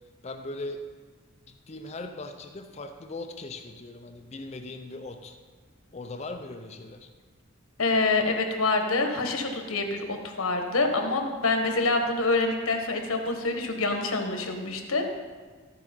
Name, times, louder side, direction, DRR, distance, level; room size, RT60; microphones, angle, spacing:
voice 1, 0.2-0.9 1.5-5.4 5.9-7.1, left 2 dB, 30° left, 6 dB, 0.5 m, -39 dB
voice 2, 7.8-15.1, left 3 dB, 85° left, 4 dB, 1.2 m, -26 dB
14.0 x 4.8 x 5.3 m, 1.4 s
head